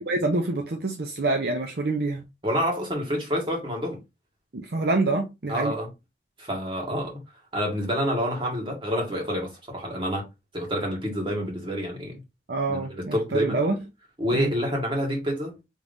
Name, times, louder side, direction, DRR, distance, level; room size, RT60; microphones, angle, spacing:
voice 1, 0.0-2.2 4.5-5.7 12.5-13.8 14.3-14.5, right 2 dB, 55° right, 0.6 m, -26 dB
voice 2, 2.4-4.0 5.5-5.9 6.4-7.2 7.5-10.3 10.5-12.2 12.7-13.6 14.2-15.6, equal, 25° right, 1.7 m, -28 dB
5.1 x 3.2 x 2.6 m
head